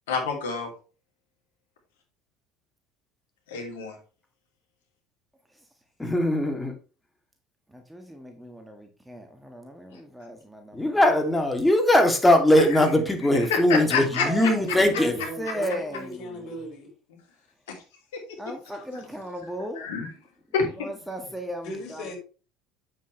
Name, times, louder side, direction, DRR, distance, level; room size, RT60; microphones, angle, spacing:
voice 1, 0.1-0.7 3.5-4.0 12.7-12.8 13.5-14.2 17.7-17.8 18.1-18.2 19.8-20.1 20.5-20.7, left 5 dB, 75° left, 3.0 m, -27 dB
voice 2, 6.0-6.7 10.7-15.2, left 1 dB, 10° left, 2.7 m, -20 dB
voice 3, 7.7-11.0 14.1-16.5 18.4-19.9 20.8-22.0, right 1 dB, 5° right, 1.7 m, -36 dB
voice 4, 15.1-16.9 18.7-18.8 21.6-22.2, left 1 dB, 55° left, 5.0 m, -37 dB
8.4 x 7.5 x 3.3 m
hypercardioid pair, 70°, 0 cm